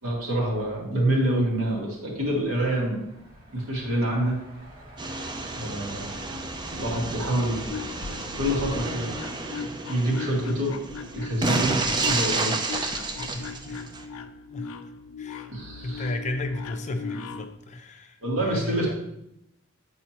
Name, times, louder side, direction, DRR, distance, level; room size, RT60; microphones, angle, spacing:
voice 1, 0.0-3.0 3.5-4.4 5.6-6.1 6.8-7.7 8.4-9.1 9.9-10.7 11.1-13.0 15.5-16.1 18.2-18.9, right 1 dB, 90° right, -4 dB, 2.0 m, -26 dB
Truck, 1.7-10.7, equal, 45° right, 2.3 m, -47 dB
sound 1, 5.0-14.0, right 3 dB, 20° right, 0.5 m, -31 dB
sound 2, 7.4-17.6, left 5 dB, 85° left, 0.4 m, -39 dB
voice 2, 13.2-13.8 14.5-14.7 15.2-15.5 15.8-18.9, left 2 dB, 35° left, 5 dB, 0.6 m, -34 dB
8.6 x 4.1 x 2.9 m, 0.81 s
head